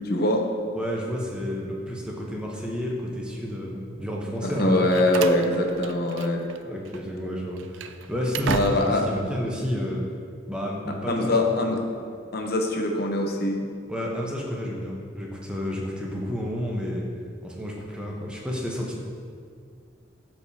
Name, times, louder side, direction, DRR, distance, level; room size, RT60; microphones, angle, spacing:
voice 1, 0.0-0.5 4.4-6.4 8.5-9.1 11.1-11.8 12.3-13.6, left 1 dB, 55° left, 2 dB, 0.8 m, -23 dB
voice 2, 0.7-4.9 6.6-10.0 10.5-11.3 13.9-17.0 17.4-19.0, equal, 5° right, -3 dB, 0.9 m, -31 dB
Slam, 4.6-6.6 6.9-7.0 7.5-9.1, right 6 dB, 85° right, 0.4 m, -34 dB
12.0 x 4.6 x 2.8 m, 2.2 s
head